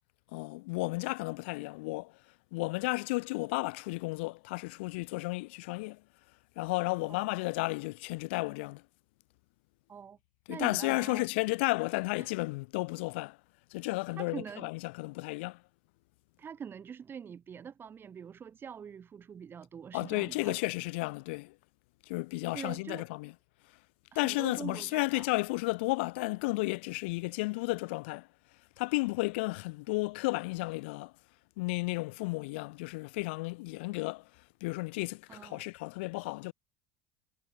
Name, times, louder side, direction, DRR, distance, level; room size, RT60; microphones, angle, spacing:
voice 1, 0.3-2.1 2.5-6.0 6.5-8.8 10.5-13.4 13.7-15.6 19.9-21.5 22.1-23.3 24.1-28.3 28.8-31.1 31.6-34.3 34.6-36.5, left 24 dB, 75° left, 1.6 m, -33 dB
voice 2, 10.5-11.3 14.2-14.7 16.4-20.6 22.5-23.1 24.1-25.4 35.3-35.6, right 7 dB, 35° right, 4.0 m, -44 dB
hypercardioid pair, 75°, 6 cm